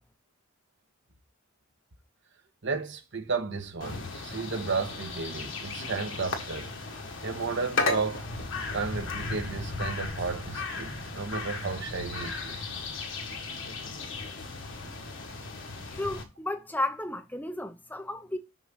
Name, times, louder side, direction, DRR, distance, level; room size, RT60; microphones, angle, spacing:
voice 1, 2.6-6.7 7.2-8.3 8.7-12.7, right 4 dB, 60° right, 1.3 m, -33 dB
sound 1, 3.8-16.2, left 3 dB, 65° left, 1.6 m, -35 dB
voice 2, 15.9-18.4, left 1 dB, 10° left, 0.6 m, -33 dB
6.2 x 5.9 x 3.9 m
head